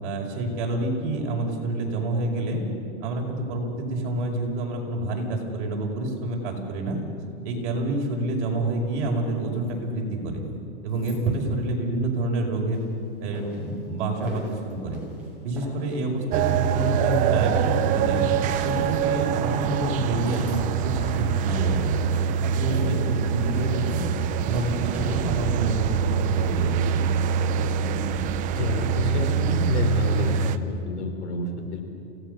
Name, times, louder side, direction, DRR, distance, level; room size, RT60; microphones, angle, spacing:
voice 1, 0.0-2.6 3.0-7.0 7.4-10.4 10.8-12.8 13.2-15.0 15.4-18.2 18.6-22.0 22.4-24.0 24.4-27.2, right 2 dB, 50° right, 0 dB, 5.3 m, -28 dB
sound 1, 6.7-7.4 9.3-10.2 10.4-11.6 12.2-12.3 13.7-14.9 15.3-16.5 16.8-17.9 18.3-21.2 21.6-21.7 22.0-22.9, left 3 dB, 25° left, 5.4 m, -58 dB
sound 2, 12.7-25.4, equal, 5° right, 7.0 m, -43 dB
sound 3, 16.3-30.6, right 7 dB, 25° right, 0.6 m, -24 dB
voice 2, 28.5-31.8, left 3 dB, 75° left, 5 dB, 4.6 m, -28 dB
29.0 x 17.5 x 6.8 m, 2.6 s
supercardioid pair, 150°, 34 cm